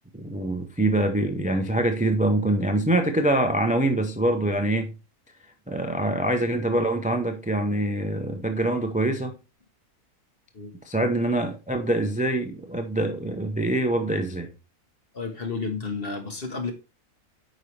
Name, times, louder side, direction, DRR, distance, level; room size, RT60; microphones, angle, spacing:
voice 1, 0.1-4.9 5.7-9.3 10.9-14.5, right 1 dB, 10° right, 0.6 m, -24 dB
voice 2, 15.1-16.7, left 4 dB, 40° left, 1.7 m, -31 dB
9.1 x 5.5 x 3.3 m
omnidirectional pair, 1.6 m